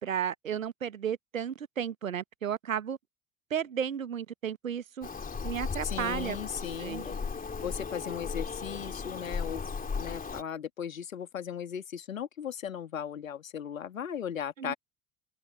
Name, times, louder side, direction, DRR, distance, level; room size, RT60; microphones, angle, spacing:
voice 1, 0.0-3.0 3.5-5.1 5.4-6.4 6.8-7.0 14.6-14.7, right 8 dB, 85° right, 1.1 m, -33 dB
Bird vocalization bird call bird song, 5.0-10.4, left 5 dB, 20° left, 3.3 m, -36 dB
voice 2, 5.8-7.2 7.6-9.6 10.0-14.7, left 8 dB, 80° left, 1.9 m, -37 dB
open air
figure-of-eight pair, 65°, 39 cm